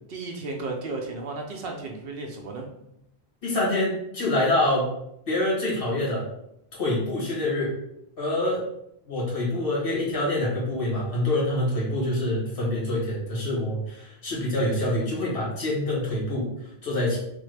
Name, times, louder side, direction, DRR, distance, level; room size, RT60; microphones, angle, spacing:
voice 1, 0.1-2.7, right 3 dB, 70° right, 1 dB, 0.8 m, -34 dB
voice 2, 3.4-4.9 5.3-6.3 6.8-7.7 8.2-8.6 9.1-17.2, left 1 dB, 60° left, -5 dB, 1.4 m, -26 dB
3.4 x 2.1 x 3.2 m, 0.79 s
omnidirectional pair, 1.1 m